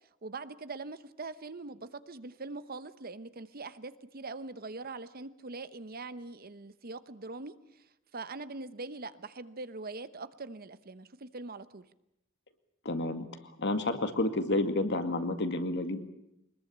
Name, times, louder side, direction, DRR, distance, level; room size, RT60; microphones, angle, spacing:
voice 1, 0.2-7.8 8.1-11.9, right 3 dB, 50° right, 13 dB, 1.0 m, -42 dB
voice 2, 12.8-16.0, left 2 dB, 60° left, 8 dB, 2.2 m, -30 dB
23.0 x 21.0 x 8.7 m, 0.84 s
head